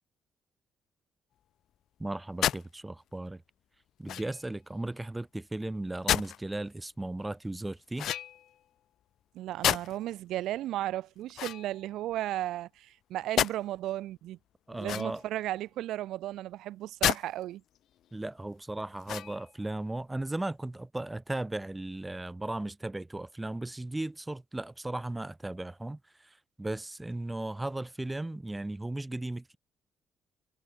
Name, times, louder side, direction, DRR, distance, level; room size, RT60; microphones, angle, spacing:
voice 1, 2.0-3.4 4.0-8.1 14.7-15.2 18.1-26.0 26.6-29.6, right 2 dB, 15° right, 2.0 m, -36 dB
sound 1, 2.4-2.7 4.1-4.5 6.1-6.4 8.0-8.6 9.6-10.1 11.3-12.2 13.4-13.6 14.8-15.4 17.0-17.2 17.8-17.9 19.0-19.5, left 11 dB, 75° left, 0.7 m, -30 dB
voice 2, 9.3-14.4 14.7-17.6, right 14 dB, 85° right, 3.5 m, -35 dB
cardioid pair, 90°, 0 cm